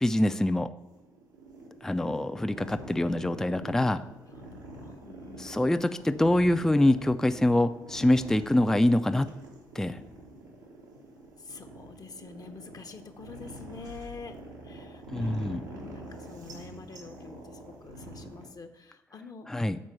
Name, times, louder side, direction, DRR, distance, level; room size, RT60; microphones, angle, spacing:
voice 1, 0.0-0.7 1.8-4.0 5.4-9.3 9.8-10.0 15.1-15.6 19.5-19.8, left 1 dB, 5° left, 9 dB, 0.4 m, -25 dB
sound 1, 0.8-18.5, right 1 dB, 90° right, 1.1 m, -45 dB
voice 2, 4.3-5.7 11.4-14.4 14.6-19.5, left 4 dB, 40° left, 7 dB, 0.8 m, -47 dB
6.2 x 4.3 x 5.7 m, 0.92 s
hypercardioid pair, 45°, 10 cm